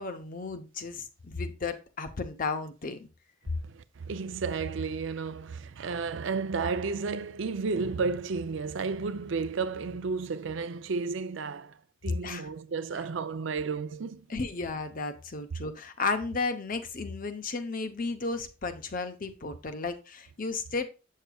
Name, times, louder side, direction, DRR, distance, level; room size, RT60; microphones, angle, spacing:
voice 1, 0.0-3.1 12.2-12.5 14.3-20.9, left 4 dB, 45° left, 0.7 m, -34 dB
voice 2, 3.6-11.8 12.0-14.3, right 4 dB, 65° right, 0.5 m, -32 dB
7.9 x 6.5 x 2.3 m
head